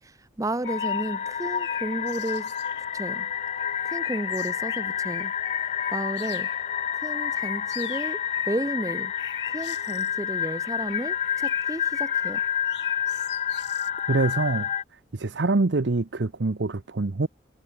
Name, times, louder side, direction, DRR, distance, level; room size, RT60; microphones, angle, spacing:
voice 1, 0.0-2.5 2.9-3.3 3.8-5.3 5.9-6.5 6.9-9.1 9.5-12.4, right 1 dB, 15° right, 0.8 m, -32 dB
sound 1, 0.6-2.8 3.3-6.7 7.1-10.1 10.6-13.9, left 10 dB, 65° left, 1.8 m, -45 dB
sound 2, 0.6-14.8, left 9 dB, 35° left, 0.4 m, -29 dB
voice 2, 14.0-14.7 15.1-17.3, right 3 dB, 70° right, 0.8 m, -25 dB
head